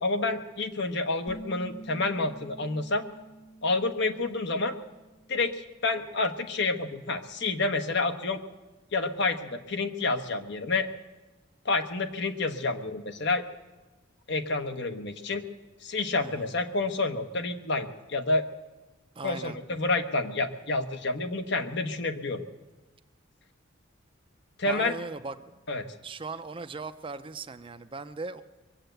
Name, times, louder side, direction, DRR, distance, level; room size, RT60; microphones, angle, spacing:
voice 1, 0.0-3.0 3.6-4.8 5.3-8.4 8.9-10.9 11.6-13.4 14.3-15.4 15.8-18.5 19.2-22.4 24.6-24.9 25.7-25.9, left 3 dB, 60° left, 7 dB, 1.0 m, -29 dB
sound 1, 1.3-6.7, right 1 dB, 20° left, 0.7 m, -49 dB
voice 2, 19.2-19.6 24.7-25.4 26.0-28.4, right 3 dB, 25° right, 10 dB, 0.5 m, -38 dB
22.0 x 8.0 x 7.9 m, 1.1 s
head